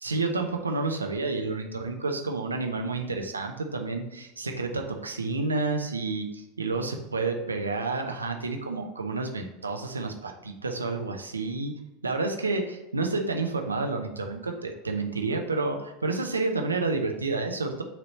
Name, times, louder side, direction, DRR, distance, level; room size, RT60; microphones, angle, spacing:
voice 1, 0.0-11.7 12.0-17.8, right 3 dB, 90° right, 3 dB, 0.8 m, -30 dB
9.0 x 3.2 x 4.2 m, 0.99 s
figure-of-eight pair, 80°, 0 cm